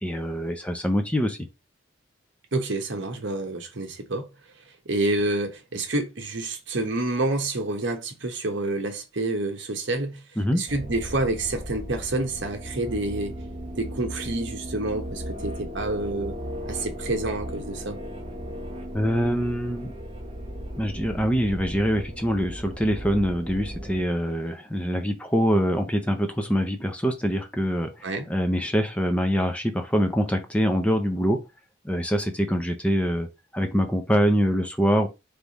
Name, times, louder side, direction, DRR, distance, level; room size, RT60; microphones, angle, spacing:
voice 1, 0.0-1.4 10.4-10.6 18.9-19.9 20.8-27.9 28.3-31.4 31.8-33.3 33.5-35.1, equal, 5° left, 0.6 m, -24 dB
voice 2, 2.5-4.3 4.8-10.2 10.5-13.3 13.8-16.3 16.7-18.0 28.0-28.2, right 2 dB, 60° right, 1.0 m, -28 dB
sound 1, 10.7-24.0, equal, 30° right, 0.9 m, -36 dB
3.5 x 3.4 x 4.1 m
head